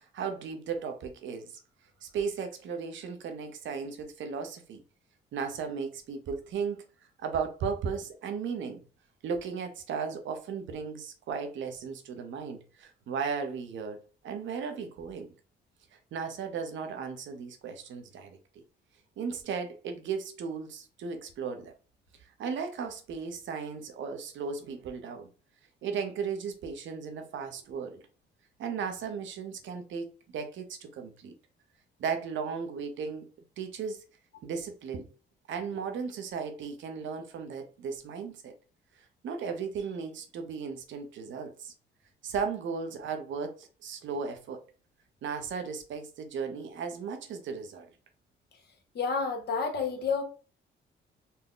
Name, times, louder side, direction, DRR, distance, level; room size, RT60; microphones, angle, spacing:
voice 1, 0.0-1.6 2.0-4.8 5.3-6.8 7.2-8.8 9.2-14.0 14.2-15.3 15.9-18.4 19.2-21.7 22.2-25.3 25.8-28.0 28.6-31.3 32.0-33.2 33.6-34.0 34.4-35.1 35.5-38.5 39.2-41.7 42.2-44.6 45.2-47.9, right 6 dB, 75° right, 0.9 m, -36 dB
voice 2, 48.9-50.2, left 5 dB, 55° left, 1.3 m, -29 dB
4.2 x 2.2 x 3.7 m
cardioid pair, 90°, 20 cm